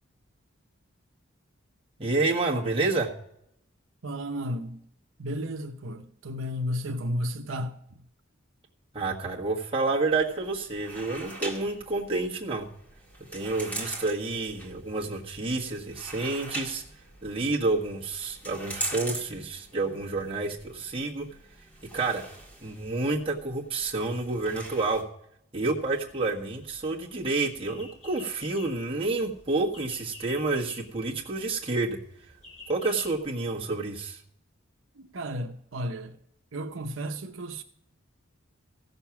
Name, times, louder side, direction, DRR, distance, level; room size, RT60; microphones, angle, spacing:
voice 1, 2.0-3.1 8.9-12.7 13.3-16.8 17.2-21.3 21.9-22.2 22.6-25.0 25.5-32.0 32.7-34.2, right 3 dB, 25° right, 1.5 m, -29 dB
voice 2, 4.0-4.8 5.2-7.7 35.0-36.1 36.5-37.6, equal, 75° right, 0.8 m, -33 dB
sound 1, 10.0-25.0, right 2 dB, 10° left, 1.9 m, -42 dB
sound 2, 25.8-33.2, left 2 dB, 30° left, 3.7 m, -50 dB
15.5 x 6.8 x 5.9 m
head